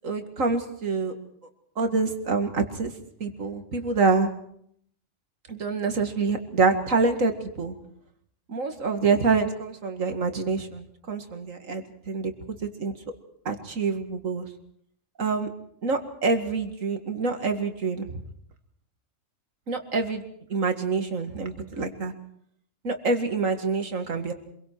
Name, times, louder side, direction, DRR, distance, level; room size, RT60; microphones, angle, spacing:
voice 1, 0.0-1.1 1.8-2.9 3.2-4.3 5.5-7.7 8.5-12.3 12.6-12.9 13.5-14.5 15.2-15.5 15.8-18.2 19.7-20.2 20.5-22.1 22.8-24.3, right 4 dB, 80° right, 6 dB, 2.4 m, -26 dB
26.5 x 22.5 x 4.6 m, 0.67 s
omnidirectional pair, 1.4 m